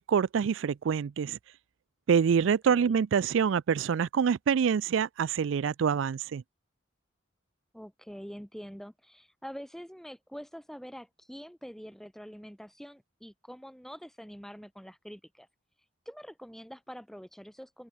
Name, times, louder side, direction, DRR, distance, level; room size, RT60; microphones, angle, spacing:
voice 1, 0.0-1.4 2.1-6.4, right 7 dB, 80° right, 0.4 m, -26 dB
voice 2, 2.4-3.0 7.7-15.5 16.1-17.9, equal, ahead, 2.4 m, -45 dB
open air
head